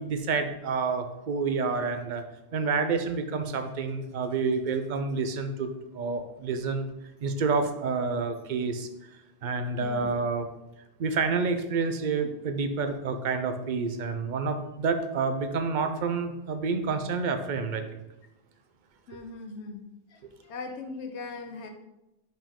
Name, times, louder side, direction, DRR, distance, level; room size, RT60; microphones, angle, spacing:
voice 1, 0.0-2.2 2.5-6.9 7.2-9.1 9.4-10.5 11.0-18.0 20.2-20.3, right 4 dB, 50° right, 7 dB, 0.7 m, -29 dB
voice 2, 9.8-10.4 19.1-19.8 20.1-21.7, left 4 dB, 85° left, 5 dB, 1.0 m, -40 dB
5.2 x 5.1 x 3.6 m, 0.93 s
omnidirectional pair, 1.1 m